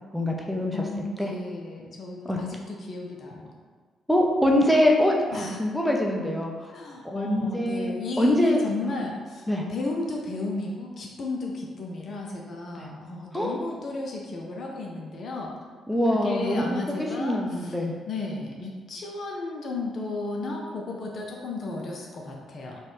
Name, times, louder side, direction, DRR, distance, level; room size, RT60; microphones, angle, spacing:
voice 1, 0.1-0.8 1.2-1.3 2.3-2.4 4.1-6.5 7.0-8.6 9.5-9.7 12.8-12.9 13.3-13.6 15.9-16.8 17.2-18.0, left 1 dB, ahead, -1 dB, 0.6 m, -24 dB
voice 2, 0.7-3.5 5.3-5.6 6.7-15.5 16.1-22.8, left 2 dB, 50° left, 0 dB, 0.4 m, -34 dB
3.9 x 2.2 x 3.2 m, 1.5 s
figure-of-eight pair, 40°, 0 cm